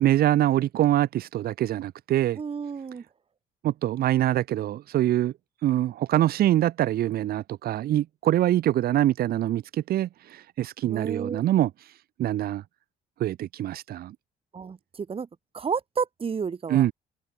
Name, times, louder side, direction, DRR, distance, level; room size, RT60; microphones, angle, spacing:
voice 1, 0.0-2.4 3.6-5.3 5.6-11.9 12.2-12.6 13.2-14.2 16.7-16.9, right 13 dB, 65° right, 2.0 m, -24 dB
voice 2, 2.4-3.0 10.9-11.4 14.5-15.3 15.5-16.9, right 6 dB, 35° right, 5.2 m, -31 dB
cardioid pair, 110°, 17 cm